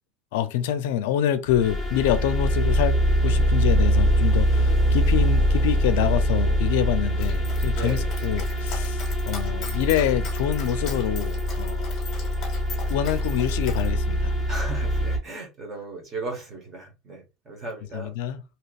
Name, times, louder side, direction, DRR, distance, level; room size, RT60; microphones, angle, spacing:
voice 1, 0.3-11.9 12.9-14.3 17.9-18.4, left 10 dB, 75° left, 0.4 m, -26 dB
sound 1, 1.5-15.2, equal, 10° left, 0.9 m, -23 dB
Dog, 7.2-13.9, left 5 dB, 30° left, 1.1 m, -40 dB
voice 2, 7.7-8.3 14.5-18.1, right 2 dB, 20° right, 1.2 m, -36 dB
3.3 x 2.8 x 2.4 m
cardioid pair, 170°, 0 cm